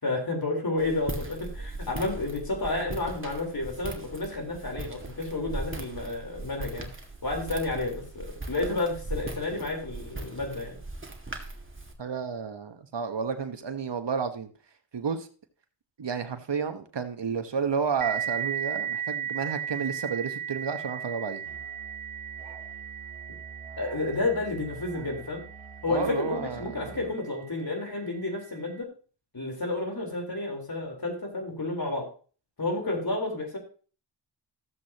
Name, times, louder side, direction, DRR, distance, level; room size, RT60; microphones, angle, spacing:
voice 1, 0.0-6.9 7.2-10.8 23.8-25.4 25.8-28.9 29.3-32.1 32.6-33.6, left 2 dB, 50° left, 1 dB, 4.1 m, -31 dB
Walk footsteps, 0.8-11.9, right 2 dB, 25° right, 1.9 m, -39 dB
voice 2, 12.0-14.5 14.9-15.3 16.0-21.4 25.9-26.9, right 6 dB, 60° right, 8 dB, 1.3 m, -31 dB
sound 1, 18.0-27.2, right 9 dB, 45° right, 0.5 m, -36 dB
Musical instrument, 21.4-27.2, right 4 dB, 80° right, 1.3 m, -47 dB
14.0 x 7.6 x 2.9 m, 0.39 s
cardioid pair, 45°, 48 cm